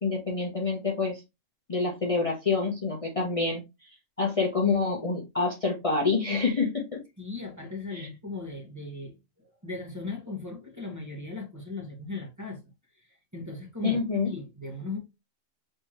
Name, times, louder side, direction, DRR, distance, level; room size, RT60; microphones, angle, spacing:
voice 1, 0.0-1.2 1.7-3.6 4.2-7.0 7.9-8.1 13.8-14.3, left 4 dB, 30° left, 0.9 m, -27 dB
voice 2, 7.2-12.6 13.0-15.0, left 3 dB, 15° right, 1.5 m, -38 dB
4.5 x 3.5 x 3.0 m
omnidirectional pair, 1.3 m